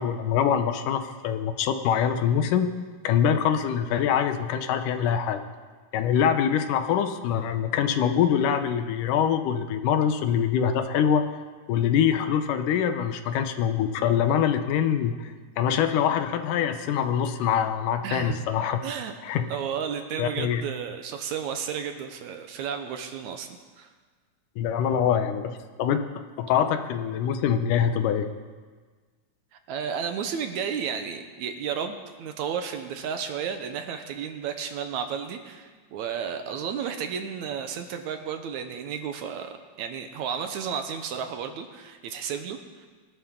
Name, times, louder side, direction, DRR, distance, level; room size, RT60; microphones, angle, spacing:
voice 1, 0.0-2.7 3.0-5.5 5.9-11.2 11.7-18.8 19.2-19.5 20.2-20.6 24.6-28.3, left 8 dB, 85° left, 8 dB, 2.4 m, -24 dB
voice 2, 18.0-18.4 18.8-19.1 19.5-23.5 23.8-23.9 29.7-42.9, right 7 dB, 70° right, 6 dB, 2.1 m, -32 dB
23.0 x 11.5 x 3.8 m, 1.5 s
omnidirectional pair, 3.6 m